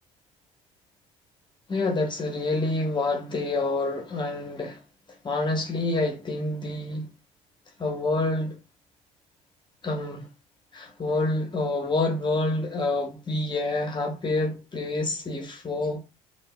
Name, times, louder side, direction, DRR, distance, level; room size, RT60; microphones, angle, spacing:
voice 1, 1.7-4.8 5.2-7.1 7.8-8.6 9.8-10.3 10.7-16.0, left 2 dB, 30° left, 1.0 m, -27 dB
5.5 x 2.5 x 2.2 m
hypercardioid pair, 65°, 15 cm